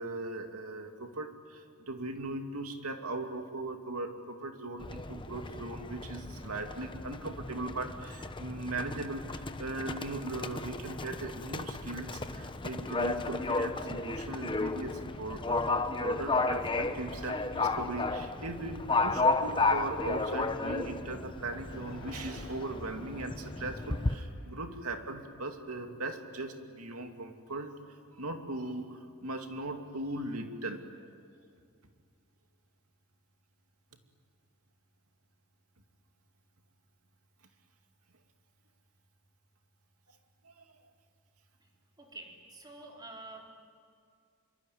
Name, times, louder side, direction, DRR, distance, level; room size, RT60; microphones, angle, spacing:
voice 1, 0.0-30.9 40.4-40.9, right 2 dB, 90° right, 5 dB, 2.6 m, -39 dB
Livestock farm animals working animals, 4.8-24.1, left 3 dB, 20° left, 0.9 m, -33 dB
sound 1, 21.7-26.1, left 3 dB, 65° left, 3.8 m, -54 dB
voice 2, 42.0-43.5, right 2 dB, 20° right, 0 dB, 4.1 m, -48 dB
25.5 x 24.0 x 9.6 m, 2.2 s
head